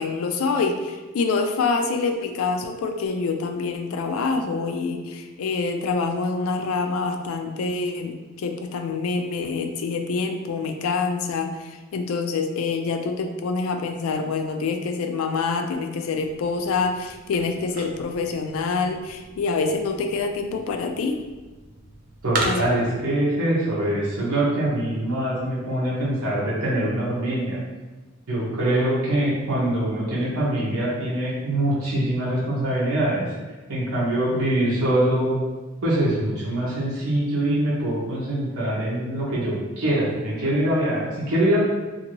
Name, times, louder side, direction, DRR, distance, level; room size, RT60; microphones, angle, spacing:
voice 1, 0.0-21.2 22.4-22.9, left 4 dB, 80° left, 5 dB, 0.3 m, -26 dB
sound 1, 16.2-23.0, right 3 dB, 40° right, 0.4 m, -36 dB
voice 2, 22.2-27.6 28.3-33.3 33.7-35.3 35.8-41.6, right 1 dB, 90° right, -7 dB, 0.9 m, -23 dB
2.6 x 2.6 x 2.9 m, 1.2 s
head